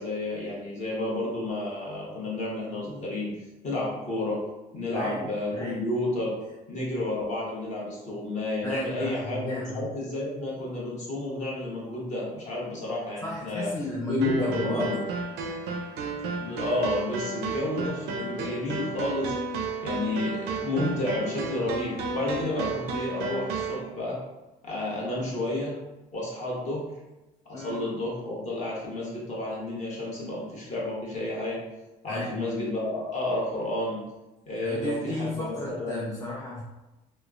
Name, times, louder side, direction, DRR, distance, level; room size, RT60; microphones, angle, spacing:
voice 1, 0.0-3.3 3.6-4.4 4.7-6.3 6.7-13.7 14.1-15.0 16.4-19.3 19.8-24.2 24.6-25.7 26.1-26.9 27.4-31.6 32.0-34.0 34.5-36.1, left 2 dB, 45° left, -5 dB, 1.0 m, -31 dB
voice 2, 8.6-9.8 13.2-14.9 27.5-27.8 32.1-32.4 34.6-36.6, left 1 dB, 20° left, -3 dB, 0.3 m, -34 dB
sound 1, 14.2-23.8, right 3 dB, 85° right, 0.4 m, -33 dB
3.0 x 2.0 x 2.4 m, 1.0 s
cardioid pair, 110°, 17 cm